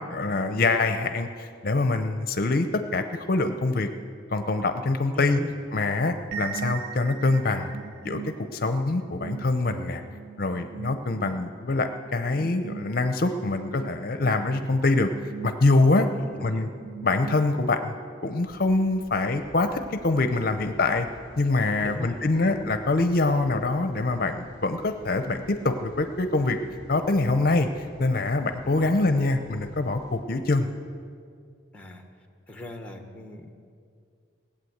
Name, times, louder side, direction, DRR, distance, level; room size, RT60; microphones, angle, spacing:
voice 1, 0.0-3.9 4.3-5.4 5.7-7.8 8.0-10.0 10.4-15.1 15.4-16.1 16.4-16.7 17.0-17.9 18.2-21.1 21.4-26.6 26.9-30.7, left 2 dB, 50° left, 8 dB, 0.7 m, -24 dB
voice 2, 5.1-5.6 16.1-16.7 21.8-22.5 28.6-29.0 31.7-32.0 32.5-33.5, left 2 dB, 5° left, 4 dB, 1.1 m, -39 dB
sound 1, 6.3-17.9, right 8 dB, 50° right, 0.7 m, -41 dB
sound 2, 18.4-30.2, equal, 80° right, 4.1 m, -51 dB
17.5 x 8.7 x 7.9 m, 2.3 s
head